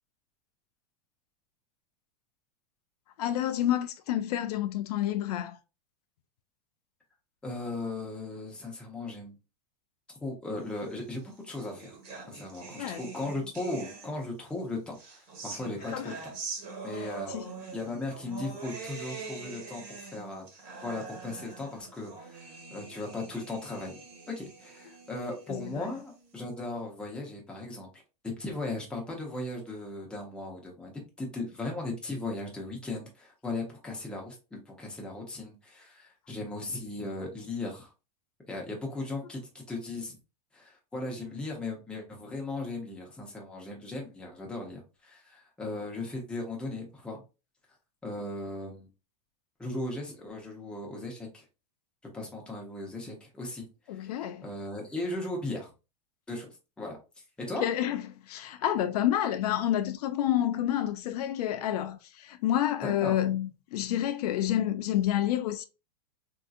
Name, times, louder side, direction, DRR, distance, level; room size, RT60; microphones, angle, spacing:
voice 1, 3.2-5.6 12.8-13.0 15.9-16.1 17.0-17.5 25.5-25.9 53.9-54.5 57.6-65.6, left 11 dB, 70° left, 0.4 m, -29 dB
voice 2, 7.4-9.4 10.2-11.9 12.3-16.3 16.8-17.3 17.7-24.0 24.3-27.9 28.2-37.9 38.5-40.2 40.5-47.2 48.0-48.9 49.6-51.4 52.1-54.1 54.4-55.7 56.3-56.5 56.8-57.0 57.4-57.6 62.8-63.1, left 2 dB, 5° left, 0.7 m, -37 dB
sound 1, 11.0-14.4 14.9-26.4, right 4 dB, 40° right, 1.3 m, -44 dB
3.7 x 2.7 x 2.4 m
supercardioid pair, 160°, 21 cm